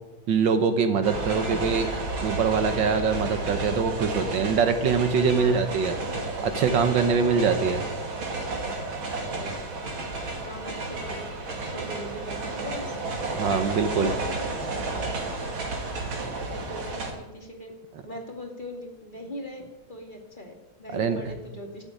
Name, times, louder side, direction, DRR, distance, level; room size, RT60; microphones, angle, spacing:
voice 1, 0.3-1.9 2.2-5.9 6.4-7.8 13.3-14.1 16.2-16.4 20.9-21.3, right 5 dB, 70° right, 8 dB, 1.8 m, -23 dB
sound 1, 1.0-17.1, right 3 dB, 90° right, 3.2 m, -32 dB
voice 2, 1.3-1.6 3.6-3.9 5.3-5.7 7.2-7.7 9.2-9.6 10.4-13.0 13.7-15.3 16.4-17.7 18.0-21.8, left 1 dB, 25° left, 1 dB, 2.4 m, -40 dB
13.0 x 8.6 x 9.2 m, 1.0 s
omnidirectional pair, 2.1 m